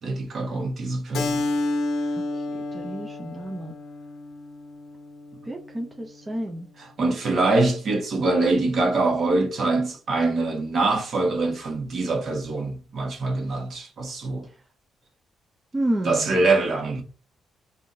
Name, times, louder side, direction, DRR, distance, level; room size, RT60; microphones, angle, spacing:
voice 1, 0.0-1.4 6.8-14.5 16.0-17.0, right 3 dB, 55° right, 1.2 m, -24 dB
Keyboard (musical), 1.1-6.3, left 2 dB, 75° left, 0.6 m, -31 dB
voice 2, 2.7-3.7 5.5-6.7 15.7-16.4, right 1 dB, 20° right, 0.5 m, -30 dB
3.5 x 2.6 x 2.6 m
cardioid pair, 90°, 0 cm